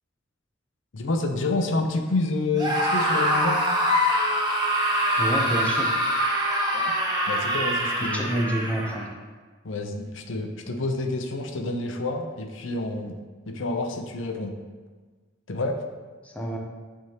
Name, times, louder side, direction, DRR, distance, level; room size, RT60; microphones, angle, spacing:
voice 1, 0.9-3.6 6.7-6.9 7.3-8.3 9.6-13.2 13.5-14.5 15.5-15.8, left 2 dB, 80° left, 5 dB, 0.6 m, -28 dB
Screaming, 2.5-9.0, equal, 20° right, 1.0 m, -24 dB
voice 2, 5.2-5.9 8.0-9.1 16.2-16.6, right 1 dB, 5° left, 0 dB, 0.6 m, -28 dB
9.1 x 3.6 x 2.9 m, 1.4 s
head